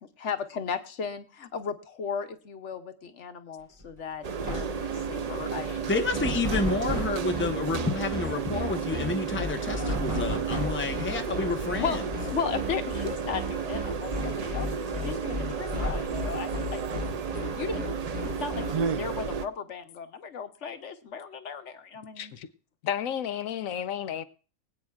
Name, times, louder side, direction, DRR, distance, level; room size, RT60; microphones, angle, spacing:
voice 1, 0.0-5.8 11.8-12.0 12.3-16.8 17.6-17.9 18.2-22.3, left 6 dB, 65° left, 1.3 m, -35 dB
sound 1, 3.8-4.0 4.2-4.9 6.2-7.2 9.9-10.9 12.5-12.6 13.0-13.1 14.1-14.7 15.7-16.3, right 1 dB, 30° right, 3.6 m, -34 dB
sound 2, 4.2-19.5, right 6 dB, 50° right, 0.4 m, -32 dB
voice 2, 5.8-12.0, left 3 dB, 10° left, 0.8 m, -29 dB
sound 3, 6.1-18.7, left 3 dB, 5° right, 1.4 m, -35 dB
voice 3, 22.2-22.5 22.8-24.2, left 9 dB, 90° left, 1.2 m, -32 dB
24.0 x 8.7 x 2.4 m
omnidirectional pair, 1.4 m